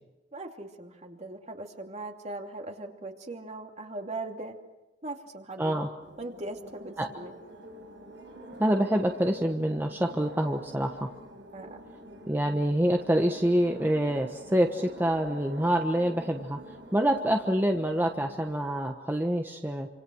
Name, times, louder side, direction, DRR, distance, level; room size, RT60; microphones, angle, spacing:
voice 1, 0.3-4.6 5.0-5.8 6.2-7.3 11.5-11.8, right 2 dB, 40° right, 3 dB, 2.7 m, -39 dB
voice 2, 5.6-5.9 7.0-7.1 8.6-11.1 12.3-16.6 16.9-19.9, right 1 dB, 10° right, 3 dB, 1.2 m, -26 dB
sound 1, 6.0-18.7, right 1 dB, 75° right, 5.5 m, -47 dB
27.5 x 26.5 x 6.4 m, 1.1 s
head